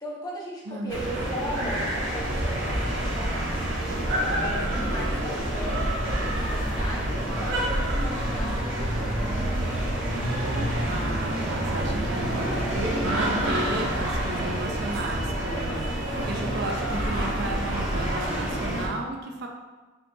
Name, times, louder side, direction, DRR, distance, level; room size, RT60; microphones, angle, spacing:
voice 1, 0.0-5.8 6.2-9.1, left 1 dB, 20° left, -4 dB, 0.9 m, -38 dB
voice 2, 0.7-1.1 10.9-19.5, right 2 dB, 60° right, 2 dB, 0.5 m, -34 dB
sound 1, 0.9-18.9, right 1 dB, 75° right, 0.9 m, -27 dB
5.5 x 2.9 x 2.6 m, 1.2 s
head